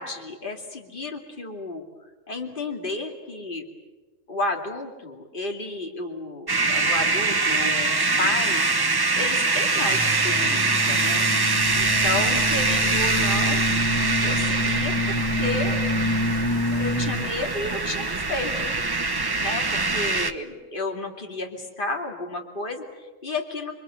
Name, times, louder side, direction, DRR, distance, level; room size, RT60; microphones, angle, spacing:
voice 1, 0.0-1.8 2.3-3.7 4.3-8.6 9.1-11.3 11.7-13.9 14.2-15.8 16.7-18.7 19.4-23.7, left 2 dB, 40° left, 2 dB, 2.8 m, -32 dB
sound 1, 6.5-20.3, right 3 dB, 20° right, 0.9 m, -24 dB
sound 2, 9.9-17.3, left 1 dB, 20° left, 1.8 m, -27 dB
sound 3, 11.6-20.3, right 2 dB, 45° right, 2.1 m, -40 dB
29.0 x 23.0 x 8.0 m, 1.3 s
omnidirectional pair, 1.3 m